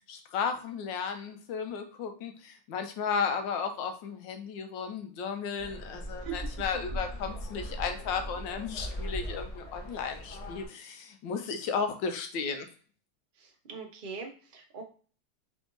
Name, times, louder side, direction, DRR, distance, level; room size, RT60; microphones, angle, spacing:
voice 1, 0.1-12.7, left 6 dB, 75° left, 7 dB, 1.3 m, -34 dB
sound 1, 5.6-10.6, equal, 35° left, 0.6 m, -39 dB
voice 2, 13.4-14.8, right 6 dB, 40° right, 1 dB, 0.7 m, -41 dB
3.8 x 3.5 x 3.8 m, 0.40 s
omnidirectional pair, 2.2 m